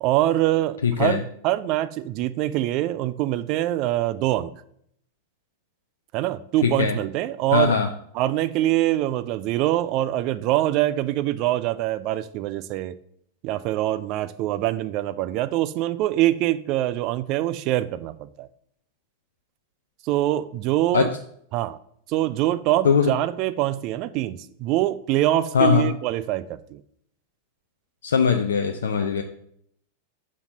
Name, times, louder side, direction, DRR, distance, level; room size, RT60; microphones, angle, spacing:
voice 1, 0.0-4.5 6.1-7.8 8.1-12.9 13.4-18.5 20.0-21.1 21.5-21.8 22.1-26.8 28.9-29.1, right 14 dB, 40° right, 0.3 m, -24 dB
voice 2, 0.8-1.2 6.6-6.9 7.5-7.9 20.9-21.1 22.8-23.1 25.5-25.9 28.0-29.2, left 6 dB, 65° left, 0.5 m, -20 dB
5.9 x 4.2 x 5.1 m
figure-of-eight pair, 90°, 0 cm